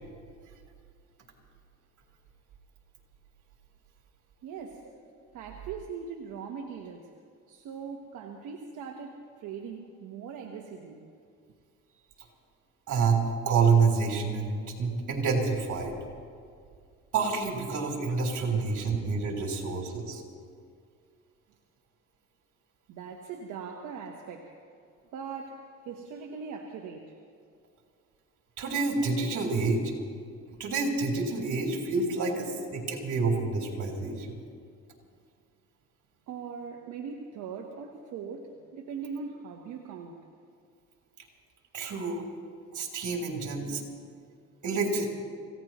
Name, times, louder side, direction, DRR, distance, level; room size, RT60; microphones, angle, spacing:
voice 1, 4.4-4.9 5.3-7.1 7.5-11.1 11.9-12.2 18.5-18.6 22.9-24.5 25.1-27.2 36.3-40.2, right 6 dB, 90° right, 2 dB, 1.2 m, -40 dB
voice 2, 12.9-15.9 17.1-20.2 28.6-29.8 30.6-34.3 41.7-42.3 42.7-43.8 44.6-45.1, right 4 dB, 70° right, 1 dB, 3.6 m, -28 dB
27.5 x 16.5 x 3.1 m, 2.3 s
cardioid pair, 90°, 30 cm